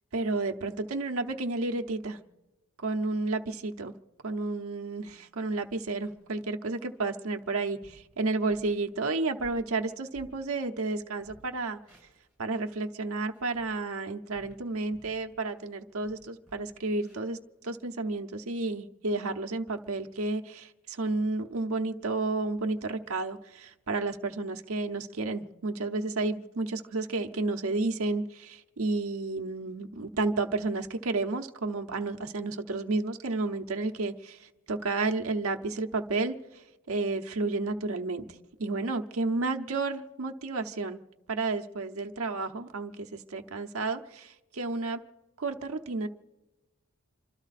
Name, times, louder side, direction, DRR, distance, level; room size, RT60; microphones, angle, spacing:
voice 1, 0.1-2.2 2.8-3.9 4.2-11.8 12.4-17.4 17.6-41.0 41.3-45.0 45.4-46.1, right 3 dB, 85° right, 0.9 m, -31 dB
sound 1, 5.5-6.3 6.8-7.0 7.4-7.5 7.8-8.1 8.5-8.8 9.2-10.9 11.2-12.7 13.2-15.3 15.7-18.2, equal, 5° left, 7.7 m, -57 dB
27.5 x 12.5 x 4.1 m
head